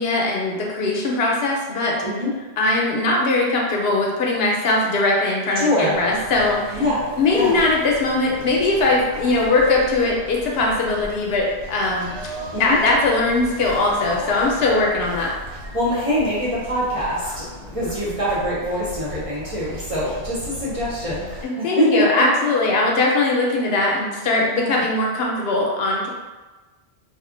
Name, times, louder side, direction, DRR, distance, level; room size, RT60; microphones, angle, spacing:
voice 1, 0.0-6.9 7.2-12.2 12.6-15.3 21.4-26.1, left 2 dB, 70° left, -2 dB, 0.8 m, -20 dB
voice 2, 5.6-5.9 6.7-7.0 7.3-7.6 12.5-12.8 15.7-22.3 24.5-24.8, equal, 35° right, -9 dB, 0.9 m, -23 dB
sound 1, 5.9-21.4, equal, 75° right, 1.0 m, -37 dB
2.4 x 2.1 x 3.7 m, 1.2 s
omnidirectional pair, 1.1 m